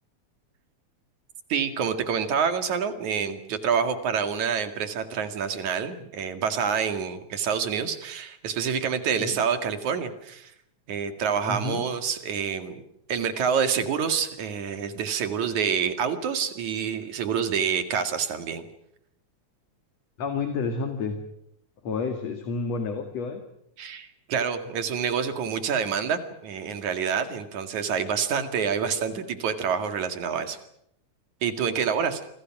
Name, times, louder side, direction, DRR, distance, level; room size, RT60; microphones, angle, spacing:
voice 1, 1.5-10.5 10.9-12.8 13.1-18.7 23.8-30.6 31.4-32.2, right 7 dB, 80° right, 8 dB, 3.5 m, -27 dB
voice 2, 11.4-11.9 20.2-21.2 21.8-23.4, left 4 dB, 60° left, 6 dB, 3.3 m, -30 dB
28.5 x 24.5 x 6.1 m, 0.75 s
omnidirectional pair, 3.3 m